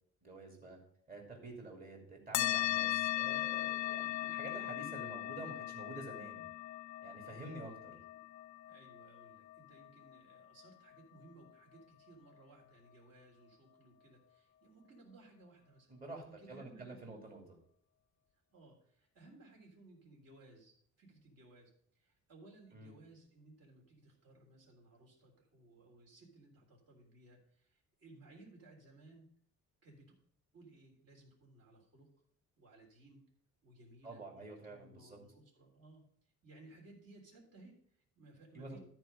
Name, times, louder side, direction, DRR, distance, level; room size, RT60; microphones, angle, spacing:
voice 1, 0.2-0.8 1.1-6.5 7.0-8.0 15.9-17.4 22.7-22.9 34.0-35.2 38.5-38.8, right 2 dB, 30° right, 0 dB, 2.6 m, -49 dB
sound 1, 2.3-11.3, left 15 dB, 75° left, 0.5 m, -39 dB
voice 2, 7.3-7.8 8.7-15.9 16.2-17.3 18.5-29.3 29.8-30.2 30.5-32.1 32.6-33.2 33.6-36.0 36.4-38.8, right 2 dB, 55° right, -1 dB, 3.5 m, -60 dB
13.5 x 4.7 x 5.2 m, 0.62 s
cardioid pair, 165°, 30 cm